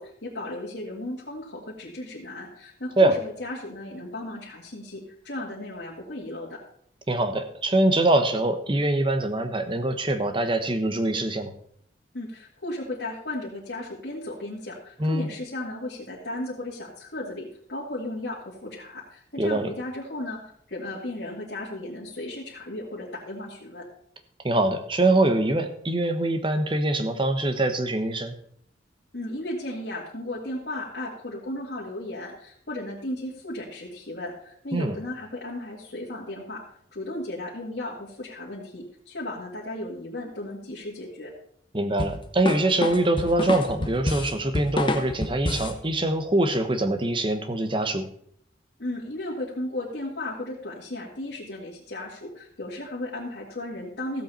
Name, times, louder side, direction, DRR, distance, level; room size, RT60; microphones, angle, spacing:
voice 1, 0.0-6.6 12.1-23.9 29.1-36.6 36.9-41.3 48.8-54.2, left 1 dB, 70° left, -5 dB, 2.1 m, -35 dB
voice 2, 7.1-11.5 15.0-15.3 19.4-19.7 24.4-28.4 34.7-34.9 41.7-48.1, right 2 dB, 30° right, 8 dB, 1.1 m, -24 dB
sound 1, 42.0-45.8, left 1 dB, 30° left, 1.0 m, -28 dB
15.0 x 7.9 x 4.3 m, 0.66 s
head